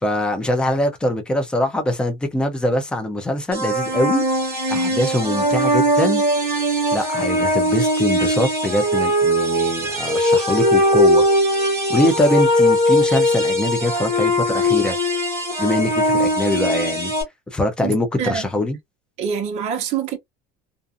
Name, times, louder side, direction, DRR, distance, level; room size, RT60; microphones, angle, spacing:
voice 1, 0.0-4.2 4.7-6.2 6.9-11.3 11.9-15.0 15.6-17.1 17.5-18.8, left 1 dB, 5° left, 0.3 m, -22 dB
sound 1, 3.5-17.2, equal, 15° right, 1.1 m, -19 dB
voice 2, 17.8-18.6 19.2-20.2, right 7 dB, 35° right, 0.7 m, -26 dB
2.4 x 2.3 x 2.5 m
cardioid pair, 180°, 20 cm